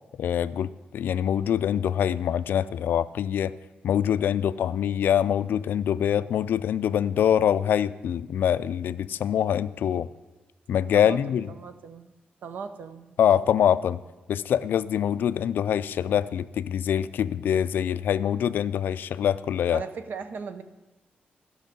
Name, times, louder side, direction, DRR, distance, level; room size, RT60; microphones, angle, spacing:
voice 1, 0.2-3.5 3.8-10.1 10.7-11.5 13.2-14.0 14.3-19.8, left 9 dB, 70° left, 15 dB, 0.3 m, -24 dB
voice 2, 10.9-12.1 12.4-13.2 19.7-20.6, right 5 dB, 60° right, 10 dB, 0.6 m, -38 dB
13.5 x 6.3 x 5.2 m, 1.1 s
wide cardioid pair, 175°, 4 cm